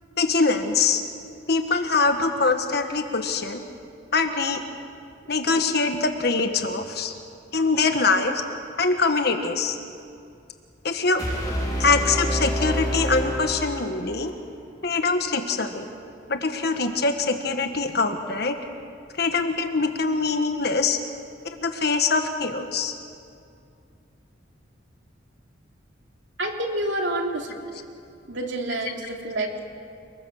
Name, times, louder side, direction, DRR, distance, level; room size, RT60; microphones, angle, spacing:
voice 1, 0.2-1.0 1.5-3.6 4.1-4.6 5.3-7.1 7.5-8.4 8.8-9.8 10.8-11.2 11.8-14.3 14.8-15.9 16.3-18.6 19.2-21.0 21.6-22.9, left 4 dB, 55° left, 6 dB, 1.4 m, -23 dB
sound 1, 11.2-14.2, equal, 20° left, 4.8 m, -27 dB
voice 2, 26.4-27.6 28.3-29.6, right 1 dB, 70° right, 1 dB, 3.1 m, -28 dB
30.0 x 21.0 x 6.5 m, 2.5 s
head